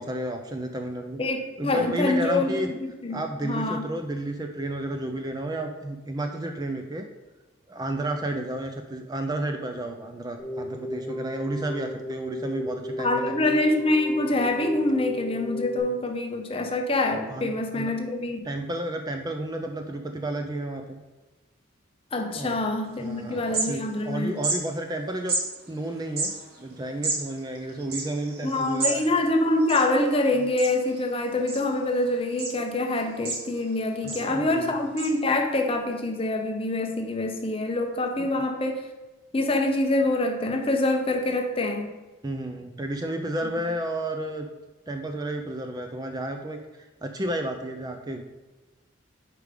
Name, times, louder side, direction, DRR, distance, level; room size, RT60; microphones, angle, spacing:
voice 1, 0.0-1.2 1.6-2.7 3.1-7.0 7.7-13.3 17.3-17.9 18.4-21.0 22.3-22.6 23.0-25.3 25.7-26.3 26.6-29.1 34.0-34.7 42.2-44.5 44.9-46.6 47.0-48.2, right 1 dB, 20° right, 5 dB, 0.4 m, -31 dB
voice 2, 1.2-3.8 13.0-18.5 22.1-24.4 28.4-38.8 39.3-41.9, left 2 dB, 30° left, 5 dB, 0.6 m, -25 dB
Keyboard (musical), 10.4-15.8, left 1 dB, 5° left, 0.9 m, -35 dB
sound 1, 23.0-23.1 23.3-24.1 24.4-24.6 25.3-25.4 26.0-29.0 29.3-29.4 29.6-30.2 30.6-31.0 31.5-32.0 32.4-32.5 33.0-33.7 34.1-34.3 35.0-35.1, right 3 dB, 50° right, 1.2 m, -30 dB
5.0 x 4.8 x 4.9 m, 1.2 s
head